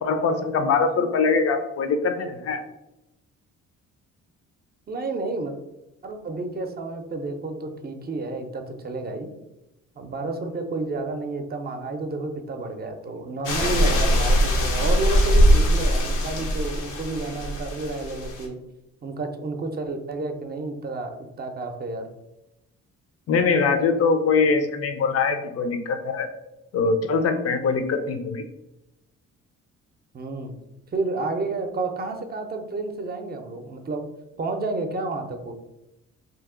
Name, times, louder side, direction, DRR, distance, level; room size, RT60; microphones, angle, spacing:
voice 1, 0.0-2.6 23.3-26.3 26.7-28.4, left 4 dB, 55° left, 7 dB, 0.6 m, -22 dB
voice 2, 4.9-5.5 6.0-9.3 10.0-18.6 19.0-22.1 30.1-30.6 30.9-34.0 34.4-35.5, right 3 dB, 30° right, 5 dB, 0.6 m, -30 dB
sound 1, 13.5-18.5, equal, 90° left, 0.8 m, -21 dB
2.9 x 2.6 x 3.7 m, 0.91 s
cardioid pair, 90°, 30 cm